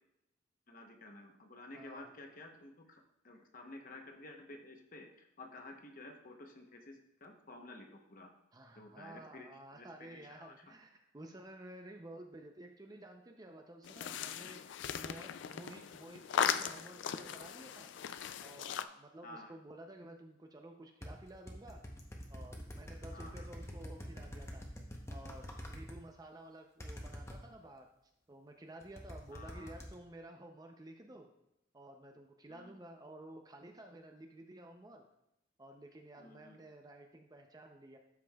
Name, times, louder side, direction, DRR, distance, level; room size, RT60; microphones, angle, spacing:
voice 1, 0.7-8.3 8.8-10.5 19.2-19.5 23.1-23.5 29.3-29.7 32.5-32.8 36.2-36.6, left 2 dB, 45° left, 4 dB, 0.9 m, -52 dB
voice 2, 1.7-2.1 8.5-14.6 15.0-17.9 18.4-21.8 22.3-24.6 25.1-27.9 28.3-31.3 31.7-35.0 35.6-38.0, right 1 dB, 20° right, 3 dB, 0.5 m, -53 dB
sound 1, 13.8-18.8, left 8 dB, 60° left, 0.3 m, -38 dB
sound 2, 21.0-26.0 26.8-27.4 28.8-29.9, equal, 15° left, 0.8 m, -46 dB
12.5 x 5.2 x 2.3 m, 0.85 s
head